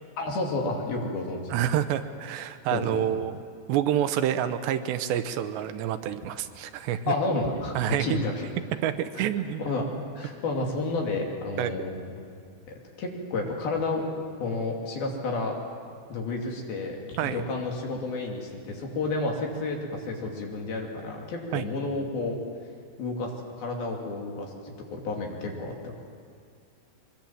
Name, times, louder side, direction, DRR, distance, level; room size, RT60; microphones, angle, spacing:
voice 1, 0.2-1.5 2.7-2.8 7.1-8.5 9.2-9.3 9.6-12.3 12.7-14.1 14.4-15.5 16.1-22.4 23.0-24.5 24.9-25.9, left 3 dB, 60° left, 0 dB, 4.4 m, -31 dB
voice 2, 1.5-3.4 3.7-7.1 7.8-8.2 8.8-9.7 11.6-11.7 17.2-17.4 21.5-21.7, right 10 dB, 80° right, 10 dB, 3.0 m, -28 dB
23.5 x 22.5 x 7.6 m, 2.3 s
omnidirectional pair, 5.1 m